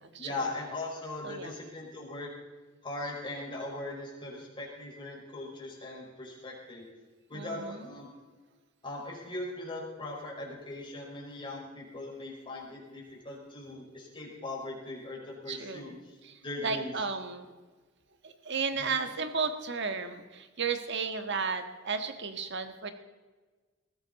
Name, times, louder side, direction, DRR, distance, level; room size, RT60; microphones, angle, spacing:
voice 1, 0.2-2.3 2.8-6.9 7.3-8.1 8.8-16.2 16.4-17.0 18.7-19.0, left 2 dB, 25° left, -4 dB, 5.3 m, -40 dB
voice 2, 7.3-7.9 15.5-15.9 16.2-17.5 18.2-22.9, right 5 dB, 60° right, 7 dB, 1.5 m, -34 dB
21.0 x 15.5 x 4.2 m, 1.3 s
head